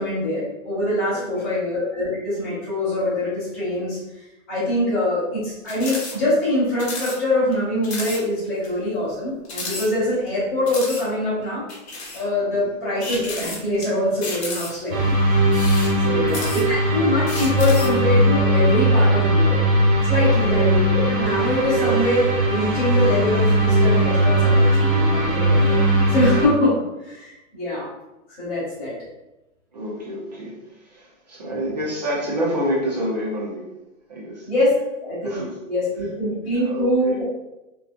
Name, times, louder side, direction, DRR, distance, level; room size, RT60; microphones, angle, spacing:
voice 1, 0.0-4.0 4.5-11.6 12.1-15.2 16.0-19.6 20.0-25.7 26.1-27.9 28.3-28.9 31.5-31.8 34.5-37.2, left 1 dB, 10° left, -17 dB, 0.6 m, -24 dB
voice 2, 1.1-1.5 12.5-12.7 16.0-16.4 20.2-20.4 29.7-33.7 34.1-34.5 35.2-35.5 36.6-37.2, equal, 30° right, -5 dB, 0.6 m, -28 dB
sound 1, 5.7-6.2 6.4-6.5 6.8-7.2 7.5-7.6 7.8-8.2 8.6-8.7 9.5-10.3 10.7-11.0 11.7-12.2 13.0-13.8 14.2-14.9 15.4-16.8 17.3-18.0, left 2 dB, 50° left, 0.8 m, -32 dB
sound 2, 14.9-26.5, right 1 dB, 75° right, 1.1 m, -19 dB
2.6 x 2.3 x 2.4 m, 0.98 s
hypercardioid pair, 175°, 41 cm